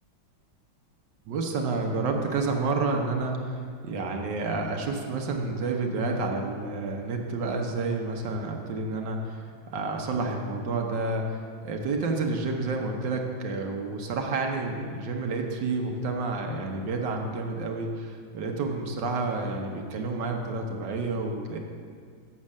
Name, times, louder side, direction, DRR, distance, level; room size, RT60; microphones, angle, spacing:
voice 1, 1.3-21.6, right 3 dB, 65° right, 2 dB, 1.4 m, -30 dB
7.4 x 6.5 x 7.2 m, 2.1 s
omnidirectional pair, 2.2 m